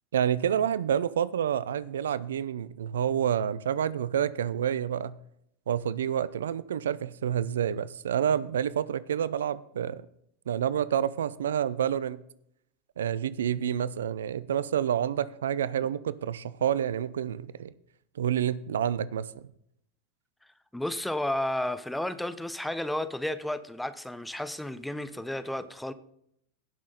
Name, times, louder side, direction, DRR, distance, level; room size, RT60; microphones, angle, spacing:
voice 1, 0.1-5.2 5.7-10.0 10.5-12.2 13.0-17.7 18.2-19.3, right 9 dB, 75° right, 0.5 m, -28 dB
voice 2, 20.7-25.9, left 1 dB, 5° left, 0.8 m, -32 dB
17.0 x 6.1 x 3.9 m
hypercardioid pair, 90°, 0 cm